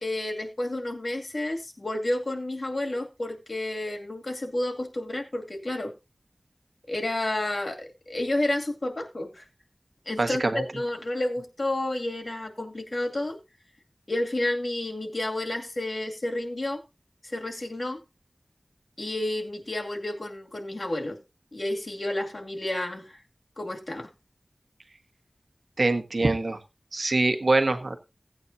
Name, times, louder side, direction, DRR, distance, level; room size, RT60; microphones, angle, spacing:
voice 1, 0.0-5.9 6.9-9.4 10.1-13.4 14.1-16.8 17.2-18.0 19.0-21.2 21.5-23.2 23.6-24.1, left 1 dB, 60° left, 3 dB, 2.3 m, -30 dB
voice 2, 10.2-10.6 25.8-26.6 26.9-28.0, right 2 dB, 75° right, 7 dB, 1.4 m, -24 dB
16.5 x 8.8 x 2.7 m, 0.26 s
wide cardioid pair, 50°, 0 cm